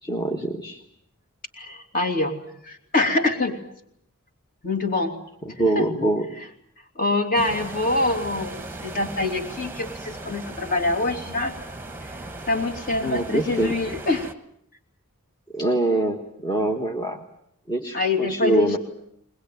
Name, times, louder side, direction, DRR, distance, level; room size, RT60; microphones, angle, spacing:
voice 1, 0.0-0.8 5.4-6.3 13.0-13.7 15.5-17.2 17.7-18.8, right 2 dB, 20° left, 1 dB, 1.5 m, -24 dB
voice 2, 1.6-2.3 2.6-3.6 4.6-5.2 5.5-5.9 6.9-11.6 12.5-14.3 17.9-18.8, left 2 dB, 40° left, 5 dB, 3.0 m, -25 dB
sound 1, 7.3-14.3, right 2 dB, 10° right, 1.2 m, -37 dB
22.0 x 20.5 x 9.4 m, 0.73 s
head